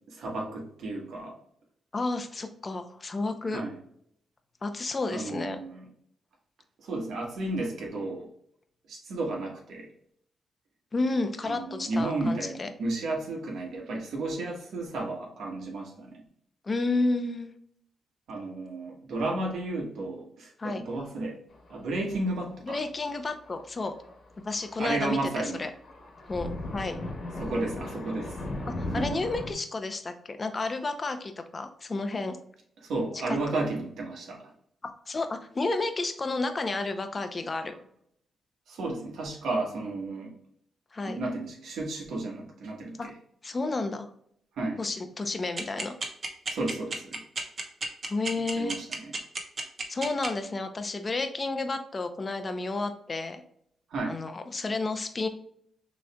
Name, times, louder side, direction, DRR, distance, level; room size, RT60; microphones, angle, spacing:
voice 1, 0.1-1.3 3.5-3.7 5.1-5.8 6.8-8.3 8.9-9.9 11.4-16.2 18.3-21.4 21.7-22.8 24.8-25.6 27.4-28.3 28.9-29.2 32.8-34.5 38.7-40.3 41.0-43.1 44.6-44.8 46.5-47.2 48.5-48.9 53.9-54.2, right 2 dB, 80° right, -1 dB, 1.5 m, -32 dB
voice 2, 1.9-3.6 4.6-5.6 10.9-12.7 16.6-17.5 20.6-20.8 22.7-23.9 24.4-25.7 26.3-27.0 28.7-32.4 33.5-33.6 34.8-37.7 40.9-41.2 43.0-43.1 43.4-44.1 44.8-45.9 48.1-48.8 49.9-53.4 54.1-55.3, left 3 dB, 35° left, 8 dB, 0.7 m, -31 dB
Thunder, 21.5-21.9 22.2-22.3 23.3-29.5, left 1 dB, 55° left, 1.4 m, -37 dB
sound 1, 45.6-50.3, right 3 dB, 45° right, 1.0 m, -31 dB
6.3 x 3.2 x 2.3 m, 0.67 s
cardioid pair, 85°, 0 cm